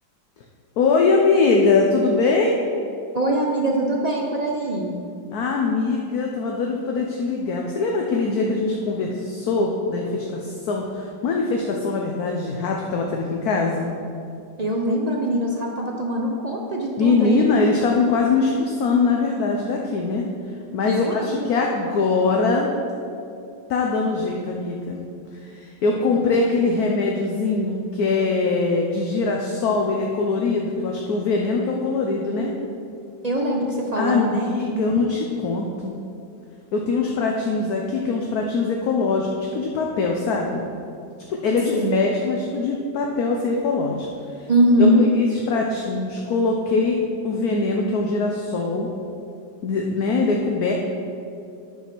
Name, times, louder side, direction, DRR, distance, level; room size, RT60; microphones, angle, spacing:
voice 1, 0.8-2.5 5.3-13.9 17.0-20.3 20.7-22.7 23.7-25.0 25.4-32.5 34.0-35.9 36.7-40.6 41.3-44.1 44.3-44.5 44.8-47.0 47.2-48.9 49.6-50.7, left 3 dB, 60° left, 0 dB, 1.1 m, -22 dB
voice 2, 3.1-5.0 14.6-17.5 20.9-21.5 33.2-34.8 41.7-42.0 44.5-45.0, right 1 dB, 55° right, -1 dB, 0.4 m, -22 dB
9.6 x 5.6 x 6.0 m, 2.5 s
omnidirectional pair, 2.0 m